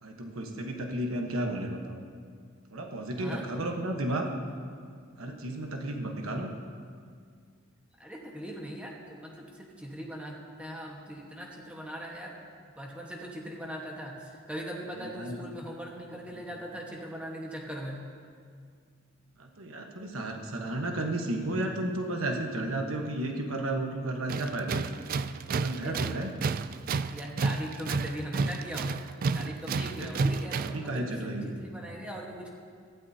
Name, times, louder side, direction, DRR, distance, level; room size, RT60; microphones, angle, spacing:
voice 1, 0.0-2.0 2.7-4.3 5.2-6.5 15.0-15.4 19.4-26.3 30.0-30.2 30.7-31.6, right 1 dB, 90° right, 2 dB, 1.2 m, -33 dB
voice 2, 8.0-12.4 12.7-18.0 25.8-26.0 27.1-28.9 29.3-32.5, equal, 5° right, -2 dB, 1.3 m, -40 dB
Tools, 24.3-30.9, right 4 dB, 45° right, 0.3 m, -31 dB
18.0 x 13.0 x 2.8 m, 2.1 s
head